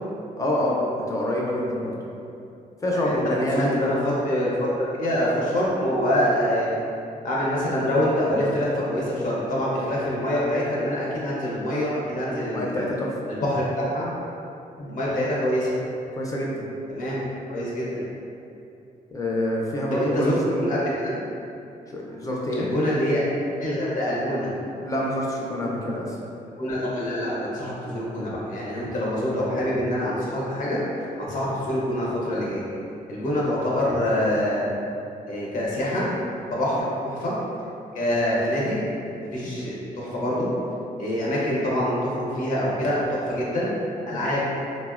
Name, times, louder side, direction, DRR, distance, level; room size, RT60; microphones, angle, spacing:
voice 1, 0.4-1.9 2.8-3.9 12.5-13.1 14.8-14.9 16.1-16.6 19.1-20.8 21.9-22.7 24.8-26.2 39.4-39.6 44.1-44.2, left 1 dB, 20° left, -3 dB, 0.4 m, -26 dB
voice 2, 3.5-4.5 4.9-6.7 7.2-12.9 13.4-14.1 14.9-15.7 16.9-18.0 19.9-21.1 22.6-23.2 23.6-24.5 26.6-30.8 31.2-32.7 33.1-34.7 35.3-36.1 36.6-37.4 37.9-38.8 39.3-40.5 41.0-43.7 44.1-44.4, equal, 60° left, -6 dB, 0.7 m, -25 dB
3.5 x 2.0 x 2.3 m, 2.7 s
cardioid pair, 140°, 15 cm